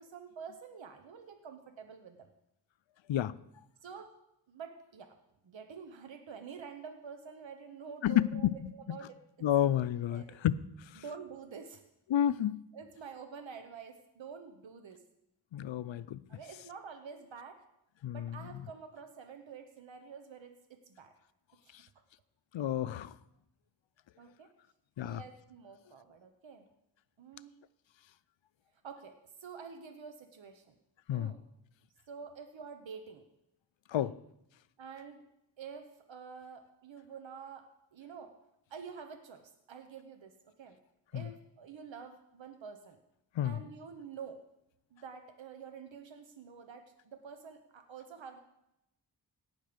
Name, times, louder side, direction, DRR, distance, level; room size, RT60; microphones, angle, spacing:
voice 1, 0.0-2.3 3.8-4.1 4.5-5.2 5.4-9.5 10.1-10.4 11.0-11.8 12.7-15.0 16.3-17.6 18.1-21.1 24.2-24.5 25.0-26.7 27.2-27.5 28.8-30.7 31.1-31.4 32.1-33.2 33.9-34.1 34.8-35.2 35.6-37.7 37.9-38.3 38.7-40.8 41.1-43.0 43.4-44.4 44.9-48.4, right 6 dB, 90° right, 7 dB, 0.9 m, -48 dB
voice 2, 8.0-9.0 9.4-10.6 10.9-11.0 12.1-12.6 15.5-16.2 18.0-18.4 22.5-23.1 25.0-25.2 31.1-31.3 33.9-34.1 41.1-41.2 43.4-43.6, left 11 dB, 85° left, 17 dB, 0.5 m, -30 dB
17.5 x 6.4 x 5.1 m, 0.85 s
wide cardioid pair, 65°, 44 cm